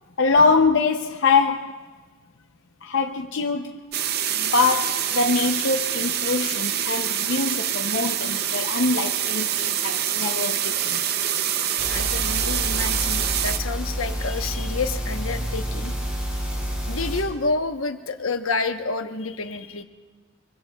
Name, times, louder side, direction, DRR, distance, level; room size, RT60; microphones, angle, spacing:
voice 1, 0.2-1.8 2.8-3.8 4.3-11.0, left 4 dB, 55° left, 0.6 m, -23 dB
sound 1, 3.9-13.6, right 10 dB, 50° right, 0.5 m, -25 dB
sound 2, 11.8-17.2, equal, 5° right, 3.4 m, -29 dB
voice 2, 11.9-15.9 16.9-19.8, left 3 dB, 75° left, 0.9 m, -29 dB
25.5 x 23.5 x 2.3 m
head